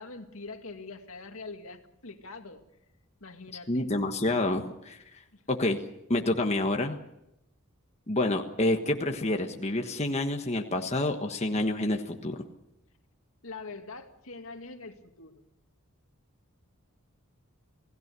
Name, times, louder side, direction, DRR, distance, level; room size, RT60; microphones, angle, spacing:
voice 1, 0.0-2.6 3.2-4.0 5.3-5.4 13.4-15.4, left 3 dB, 75° left, 5 dB, 2.2 m, -44 dB
voice 2, 3.7-5.0 5.5-5.8 6.1-7.0 8.1-12.4, left 2 dB, 30° left, 4 dB, 1.4 m, -28 dB
28.0 x 17.0 x 6.8 m, 0.85 s
head